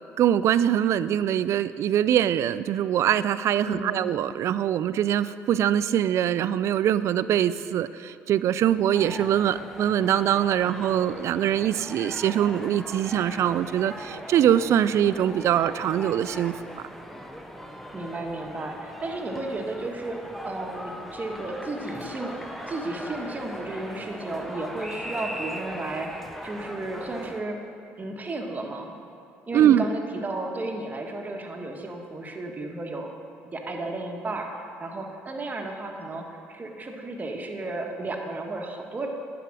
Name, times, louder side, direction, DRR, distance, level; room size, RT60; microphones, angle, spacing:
voice 1, 0.2-16.5 29.5-29.8, right 10 dB, 60° right, 15 dB, 0.3 m, -23 dB
voice 2, 3.6-4.0 17.9-20.2 20.4-22.4 22.7-27.6 28.0-28.9 29.5-33.1 33.5-39.1, right 2 dB, 30° right, 2 dB, 1.4 m, -33 dB
sound 1, 8.9-27.4, equal, 5° left, 0.9 m, -39 dB
10.0 x 4.9 x 6.0 m, 2.8 s
supercardioid pair, 70°, 6 cm